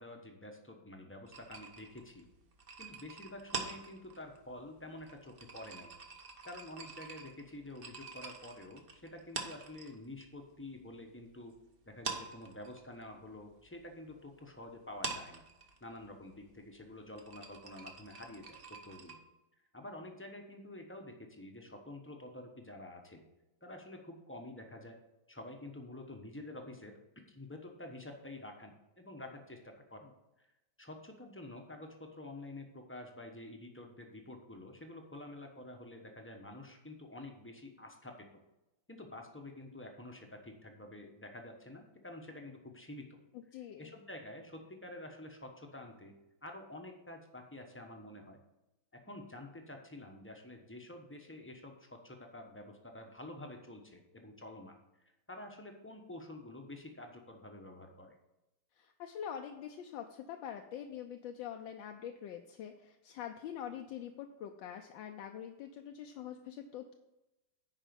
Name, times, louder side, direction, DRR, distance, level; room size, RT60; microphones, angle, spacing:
voice 1, 0.0-2.3 2.8-5.9 6.5-11.5 11.9-15.4 15.8-19.2 19.7-23.2 23.6-25.0 25.3-26.9 27.3-30.1 30.4-30.5 30.8-38.3 38.9-43.2 43.8-46.1 46.4-48.4 48.9-58.2, left 1 dB, 10° left, 3 dB, 0.6 m, -49 dB
sound 1, 1.3-10.3 10.5-11.6 11.9-19.1, right 4 dB, 40° right, 0.8 m, -45 dB
voice 2, 43.5-43.9 58.8-66.9, left 9 dB, 80° left, 4 dB, 1.4 m, -44 dB
9.9 x 5.1 x 5.2 m, 0.95 s
omnidirectional pair, 2.1 m